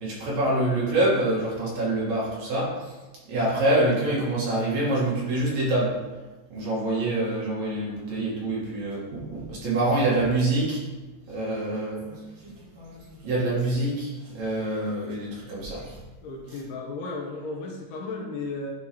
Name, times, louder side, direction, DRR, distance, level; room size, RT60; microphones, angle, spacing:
voice 1, 0.0-2.9 3.3-5.9 6.5-10.8 11.3-16.0, right 1 dB, 55° right, -5 dB, 2.4 m, -26 dB
voice 2, 16.2-18.7, left 3 dB, 80° left, -1 dB, 2.9 m, -34 dB
11.0 x 4.5 x 3.0 m, 1.2 s
omnidirectional pair, 4.8 m